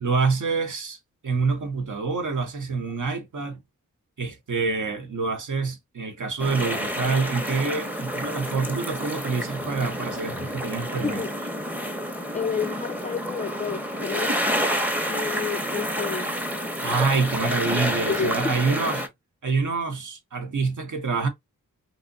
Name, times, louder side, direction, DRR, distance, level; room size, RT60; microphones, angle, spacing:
voice 1, 0.0-1.0 1.2-3.6 4.2-11.2 16.8-19.0 19.4-21.3, right 4 dB, 60° right, 0.8 m, -26 dB
sound 1, 6.4-19.1, equal, 5° right, 0.7 m, -29 dB
voice 2, 12.3-14.3 15.1-16.3 18.1-18.7, left 6 dB, 25° left, 0.3 m, -30 dB
2.7 x 2.1 x 2.6 m
cardioid pair, 40°, 34 cm